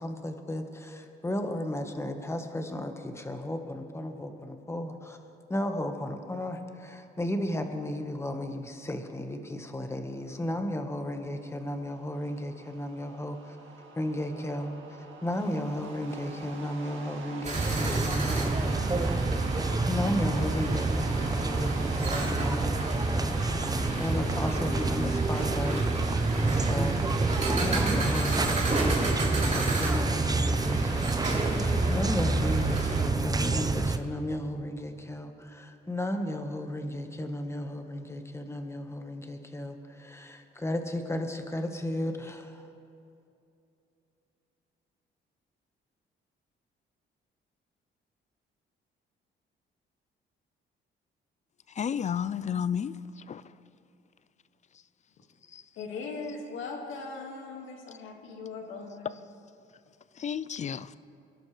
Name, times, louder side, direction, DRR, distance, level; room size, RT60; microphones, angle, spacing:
voice 1, 0.0-5.2 5.5-13.6 13.9-14.7 15.0-19.4 19.9-23.7 24.0-25.8 26.2-27.0 27.6-42.7, left 1 dB, 15° left, 1.4 m, -34 dB
sound 1, 11.3-22.5, right 4 dB, 75° right, 1.9 m, -44 dB
sound 2, 17.4-33.1, right 2 dB, 35° right, 3.4 m, -33 dB
sound 3, 17.5-34.0, right 3 dB, 20° right, 0.7 m, -28 dB
voice 2, 51.8-53.4 55.5-55.6 60.2-60.9, left 8 dB, 35° left, 0.4 m, -32 dB
voice 3, 55.8-59.2, left 4 dB, 90° left, 2.1 m, -39 dB
23.5 x 12.0 x 3.3 m
cardioid pair, 90°, 20 cm